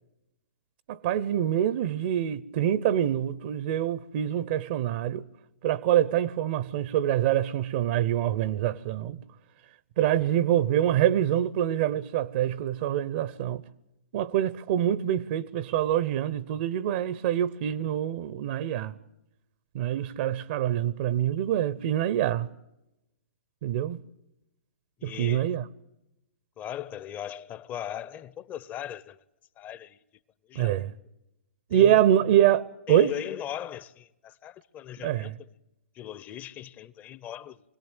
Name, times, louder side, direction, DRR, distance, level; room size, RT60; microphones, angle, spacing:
voice 1, 0.9-5.2 5.6-9.2 10.0-13.6 14.1-18.9 19.7-22.5 23.6-24.0 25.0-25.6 30.5-30.9 31.7-33.1 35.0-35.3, right 11 dB, 45° right, 0.8 m, -25 dB
voice 2, 10.0-10.4 25.0-25.6 26.6-29.2 29.6-30.0 30.5-30.8 31.7-32.0 32.9-35.5 35.9-37.6, left 11 dB, 25° left, 0.8 m, -39 dB
25.0 x 17.5 x 9.0 m
hypercardioid pair, 130°, 7 cm